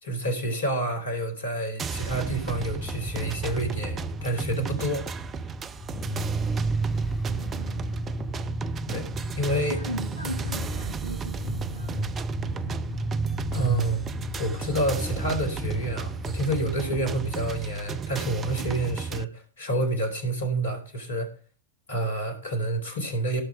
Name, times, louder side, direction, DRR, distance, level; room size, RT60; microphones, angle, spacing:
voice 1, 0.0-5.0 8.9-9.1 9.4-9.8 13.5-14.0 14.4-21.3 21.9-23.4, right 1 dB, 70° left, 5 dB, 4.4 m, -28 dB
sound 1, 1.8-19.2, right 6 dB, 25° right, 0.7 m, -34 dB
sound 2, 2.4-17.6, right 1 dB, 10° left, 5.0 m, -33 dB
voice 2, 7.2-8.0 9.7-12.0 18.6-18.9, equal, 85° right, 2 dB, 2.8 m, -38 dB
17.5 x 6.3 x 5.0 m, 0.38 s
figure-of-eight pair, 90°, 0 cm